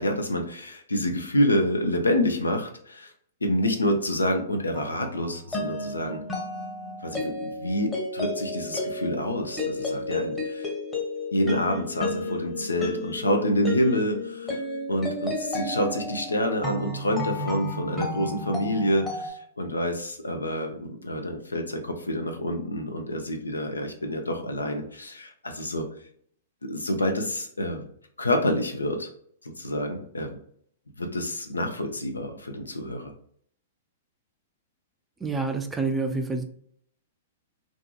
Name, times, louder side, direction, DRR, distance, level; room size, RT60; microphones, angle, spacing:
voice 1, 0.0-3.1 3.4-6.2 7.0-10.7 11.3-14.6 14.9-25.9 26.6-27.9 28.2-29.1 29.4-30.3 31.0-33.1, left 1 dB, 90° left, 5 dB, 0.5 m, -27 dB
sound 1, 4.7-19.3, left 2 dB, 10° left, 0.8 m, -32 dB
voice 2, 35.2-36.4, right 3 dB, 10° right, 6 dB, 0.3 m, -27 dB
2.6 x 2.4 x 2.3 m, 0.63 s
figure-of-eight pair, 110°, 0 cm